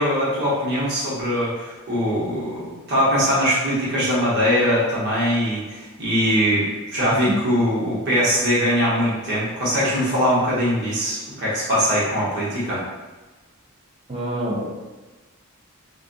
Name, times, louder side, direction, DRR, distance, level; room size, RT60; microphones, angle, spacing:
voice 1, 0.0-12.8, equal, 50° right, -8 dB, 1.0 m, -21 dB
voice 2, 7.1-7.4 14.1-14.7, right 1 dB, 30° right, -3 dB, 0.5 m, -26 dB
2.4 x 2.2 x 2.5 m, 1.2 s
head